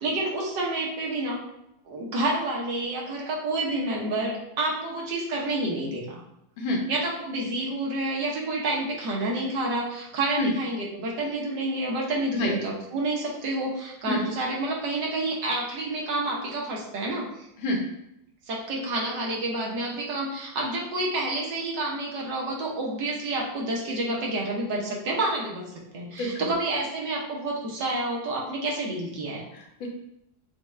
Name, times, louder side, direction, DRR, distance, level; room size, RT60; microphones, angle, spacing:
voice 1, 0.0-1.4 1.8-6.2 6.9-17.5 18.5-29.5, right 2 dB, 65° right, -3 dB, 1.5 m, -29 dB
voice 2, 26.2-26.5 29.5-29.9, left 1 dB, 80° left, 0 dB, 1.6 m, -27 dB
6.8 x 2.3 x 3.2 m, 0.81 s
omnidirectional pair, 2.2 m